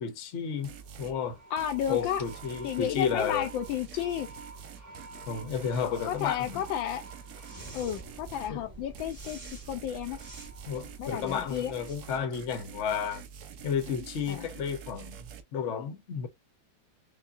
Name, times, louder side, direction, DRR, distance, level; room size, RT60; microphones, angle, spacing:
voice 1, 0.0-1.4 1.9-3.5 5.3-6.6 8.5-8.6 10.7-13.3 13.6-16.3, left 7 dB, 55° left, 0.8 m, -32 dB
sound 1, 0.6-13.0, right 2 dB, 10° right, 1.0 m, -49 dB
sound 2, 0.6-1.2 1.6-8.6 8.9-15.4, right 7 dB, 65° right, 0.9 m, -47 dB
voice 2, 1.5-2.2 2.6-4.3 6.1-7.0 7.7-9.4 9.7-10.2 11.0-11.7 14.3-14.5, left 10 dB, 75° left, 1.2 m, -32 dB
5.3 x 2.3 x 2.4 m
omnidirectional pair, 2.3 m